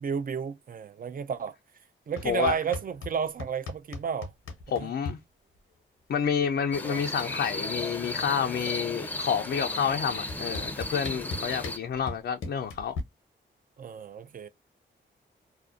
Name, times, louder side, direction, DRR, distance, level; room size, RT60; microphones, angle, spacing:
voice 1, 0.0-1.6 2.1-4.3 4.8-4.9 6.9-7.0 13.8-14.5, right 7 dB, 45° right, 0.4 m, -32 dB
sound 1, 2.2-3.1 3.4-5.2 6.4-6.5 6.8-7.2 7.5-8.8 9.7-9.8 10.3-13.0, left 3 dB, 90° left, 0.7 m, -38 dB
voice 2, 2.2-2.6 4.7-5.2 6.1-13.0, left 7 dB, 60° left, 0.4 m, -29 dB
sound 2, 6.7-11.8, left 1 dB, 10° left, 0.5 m, -35 dB
2.4 x 2.1 x 2.4 m
cardioid pair, 50°, 21 cm